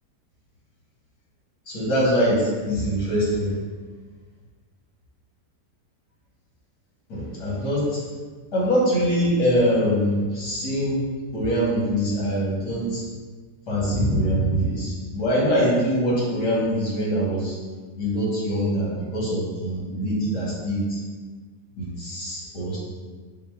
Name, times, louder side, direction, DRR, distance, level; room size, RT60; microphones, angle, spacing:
voice 1, 1.7-3.5 7.1-8.0 8.5-11.0 11.3-13.0 13.7-17.5 18.0-21.0 21.8-22.8, equal, 80° left, -7 dB, 2.0 m, -23 dB
5.0 x 2.0 x 3.4 m, 1.4 s
omnidirectional pair, 1.8 m